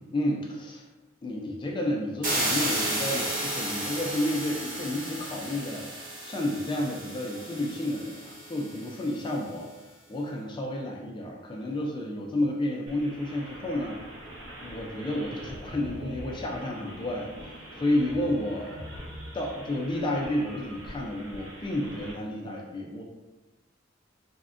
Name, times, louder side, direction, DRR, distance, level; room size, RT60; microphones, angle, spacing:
voice 1, 0.1-0.8 1.2-5.9 6.2-9.7 10.1-14.0 14.6-17.3 17.8-18.8 19.3-23.0, left 1 dB, 25° left, -1 dB, 0.3 m, -31 dB
sound 1, 2.2-9.1, right 1 dB, 45° right, 0.8 m, -33 dB
sound 2, 12.9-22.1, equal, 80° right, 0.7 m, -43 dB
3.5 x 2.1 x 2.4 m, 1.1 s
head